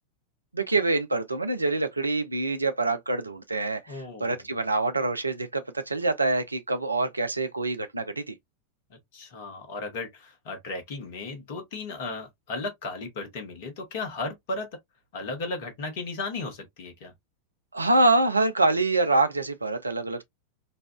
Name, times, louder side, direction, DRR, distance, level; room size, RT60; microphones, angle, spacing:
voice 1, 0.5-8.4 17.7-20.2, right 2 dB, 80° right, 0.5 m, -25 dB
voice 2, 3.9-4.5 8.9-14.7 15.1-17.1, left 3 dB, 50° left, 1.3 m, -35 dB
4.1 x 2.4 x 2.2 m
figure-of-eight pair, 90°, 0 cm